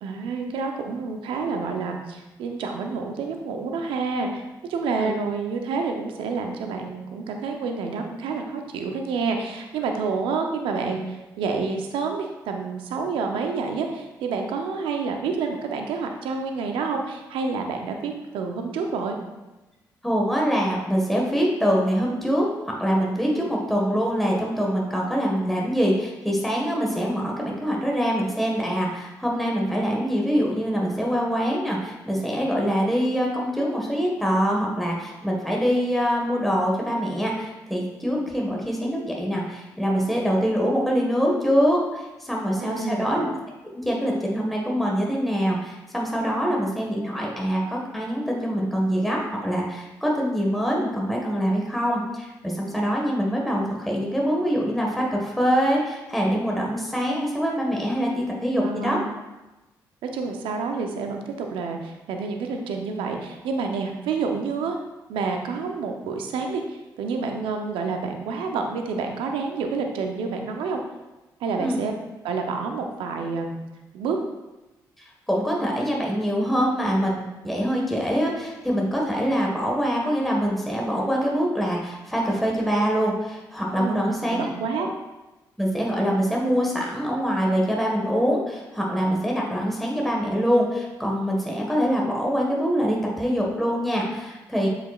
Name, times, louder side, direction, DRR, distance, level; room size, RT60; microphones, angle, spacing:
voice 1, 0.0-19.2 42.6-43.1 58.6-59.1 60.0-64.8 65.1-70.8 71.4-71.9 72.2-73.6 73.9-74.2 83.8-84.9, right 4 dB, 80° right, 3 dB, 0.7 m, -28 dB
voice 2, 20.0-43.3 43.8-59.0 71.6-71.8 75.3-84.5 84.8-84.9 85.6-94.7, equal, ahead, -2 dB, 1.5 m, -24 dB
7.5 x 5.1 x 2.4 m, 1.1 s
supercardioid pair, 50°, 9 cm